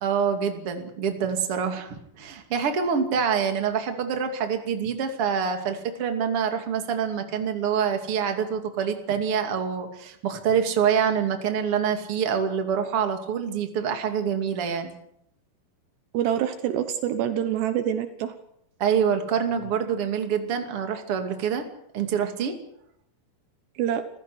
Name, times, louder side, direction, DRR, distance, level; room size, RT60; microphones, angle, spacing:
voice 1, 0.0-14.9 18.8-21.6 21.9-22.6, right 7 dB, 35° right, 5 dB, 2.8 m, -26 dB
voice 2, 16.1-18.3 23.8-24.0, right 10 dB, 75° right, 9 dB, 3.2 m, -26 dB
28.0 x 15.5 x 8.0 m, 0.77 s
omnidirectional pair, 5.2 m